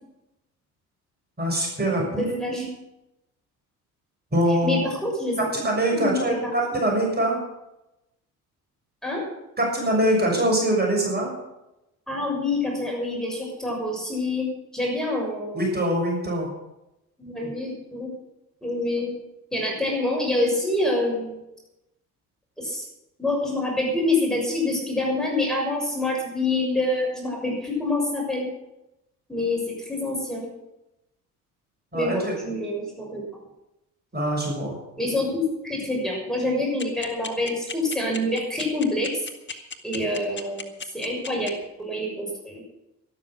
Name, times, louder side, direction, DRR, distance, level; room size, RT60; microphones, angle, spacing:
voice 1, 1.4-2.6 4.3-4.8 5.4-7.4 9.6-11.3 15.5-16.5 31.9-32.4 34.1-34.7, right 1 dB, 20° right, -1 dB, 6.6 m, -23 dB
voice 2, 2.2-2.7 4.5-5.4 5.9-6.8 9.0-9.2 12.1-14.5 14.7-15.6 17.2-18.1 18.6-19.1 19.5-21.3 22.6-22.8 23.2-28.5 29.3-30.5 31.9-33.2 35.0-39.1 39.5-40.7 40.9-41.5 41.8-42.6, left 2 dB, ahead, -3 dB, 6.5 m, -26 dB
sound 1, 36.8-41.5, left 5 dB, 25° left, 1.7 m, -33 dB
13.0 x 12.5 x 6.2 m, 0.91 s
figure-of-eight pair, 55°, 44 cm